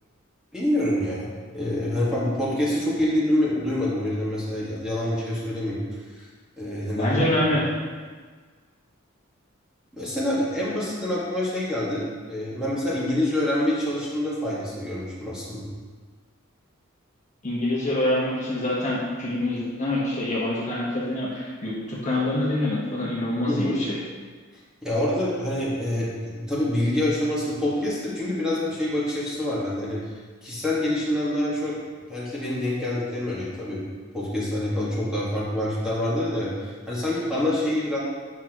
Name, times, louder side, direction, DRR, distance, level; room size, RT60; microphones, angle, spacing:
voice 1, 0.5-1.3 1.5-5.8 6.6-7.3 10.0-15.7 23.5-23.8 24.8-30.0 30.4-31.8 32.1-33.8 34.1-38.0, left 1 dB, 5° right, -8 dB, 1.8 m, -26 dB
voice 2, 6.9-7.7 17.4-24.0, left 1 dB, 35° left, -7 dB, 1.3 m, -26 dB
8.7 x 6.0 x 3.0 m, 1.5 s
head